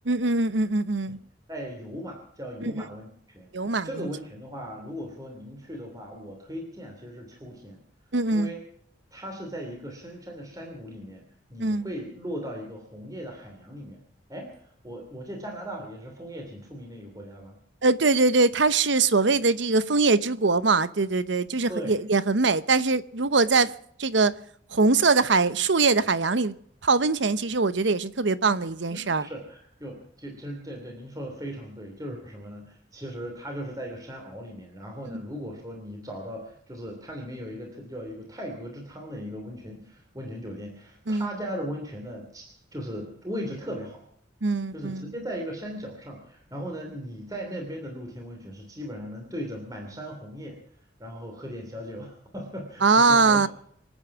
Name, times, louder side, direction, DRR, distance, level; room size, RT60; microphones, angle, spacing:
voice 1, 0.1-1.2 2.6-2.8 3.5-4.1 8.1-8.5 11.6-11.9 17.8-24.4 24.7-26.6 26.8-29.3 35.1-35.2 41.1-41.3 44.4-45.1 52.8-53.5, right 3 dB, 70° right, 0.9 m, -22 dB
voice 2, 1.5-3.1 3.3-3.5 3.8-7.8 8.3-8.6 9.1-11.2 11.5-14.0 14.3-17.6 21.7-22.0 28.9-42.4 42.7-44.0 44.7-50.6 51.0-53.5, equal, 20° right, 2.9 m, -38 dB
26.0 x 9.2 x 6.0 m
head